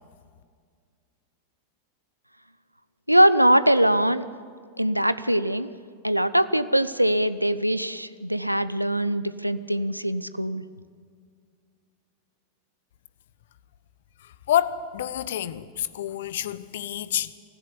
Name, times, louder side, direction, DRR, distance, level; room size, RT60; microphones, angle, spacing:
voice 1, 3.1-4.3 4.8-5.7 6.0-10.6, right 1 dB, 90° right, 0.8 m, -22 dB
voice 2, 14.2-17.3, left 11 dB, 60° left, 0.9 m, -28 dB
23.5 x 15.5 x 9.9 m
figure-of-eight pair, 90°, 0 cm